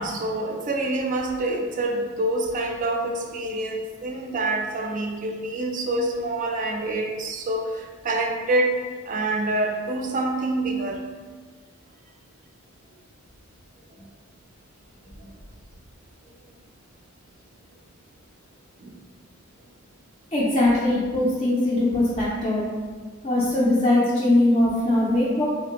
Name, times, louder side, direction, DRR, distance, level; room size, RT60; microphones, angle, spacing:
voice 1, 0.0-8.8 9.1-11.0 15.2-15.3 18.8-18.9, right 2 dB, 40° right, 2 dB, 0.3 m, -26 dB
voice 2, 20.3-22.6 23.2-25.4, left 1 dB, 25° left, -8 dB, 0.4 m, -21 dB
3.2 x 2.5 x 2.8 m, 1.5 s
head